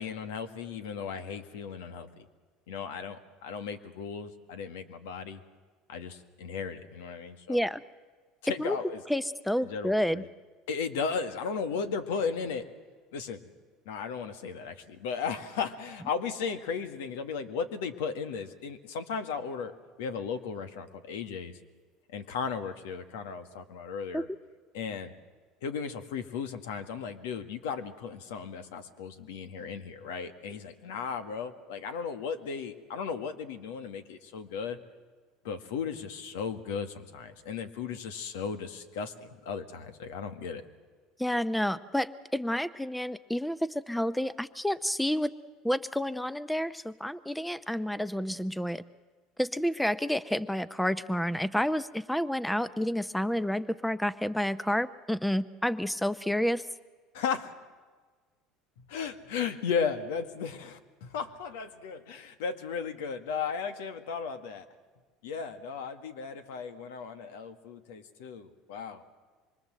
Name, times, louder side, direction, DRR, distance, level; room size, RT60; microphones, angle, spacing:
voice 1, 0.0-2.2 2.7-5.4 5.9-7.7 8.4-9.0 9.6-10.3 10.7-12.7 13.1-13.4 13.9-19.7 20.0-21.6 22.1-24.3 24.7-25.1 25.6-34.8 35.4-40.6 57.1-57.5 58.8-64.7 65.2-69.0, left 6 dB, 85° left, 9 dB, 1.8 m, -35 dB
voice 2, 7.5-7.8 8.6-8.8 9.1-10.2 24.1-24.2 41.2-45.3 45.6-48.8 49.4-56.7, equal, 5° left, 15 dB, 0.7 m, -29 dB
25.5 x 23.5 x 7.7 m, 1.4 s
supercardioid pair, 100°, 0 cm